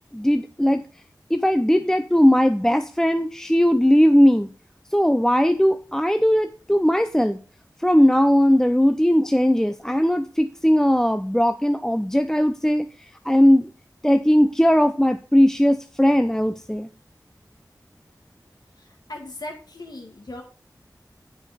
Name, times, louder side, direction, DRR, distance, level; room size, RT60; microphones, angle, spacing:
voice 1, 0.1-0.8 1.3-4.5 4.9-7.4 7.8-13.7 14.0-16.9, equal, 5° left, 8 dB, 0.7 m, -19 dB
voice 2, 18.7-20.4, left 1 dB, 70° left, 1 dB, 2.0 m, -38 dB
15.0 x 5.4 x 4.2 m, 0.38 s
wide cardioid pair, 45°, 7 cm